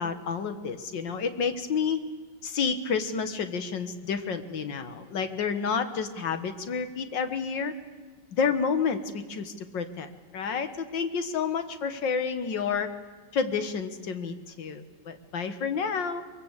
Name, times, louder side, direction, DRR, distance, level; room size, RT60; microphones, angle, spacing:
voice 1, 0.0-2.0 2.4-7.7 8.3-12.9 13.3-16.2, left 6 dB, 65° left, 9 dB, 2.2 m, -30 dB
23.0 x 23.0 x 8.1 m, 1.4 s
omnidirectional pair, 2.2 m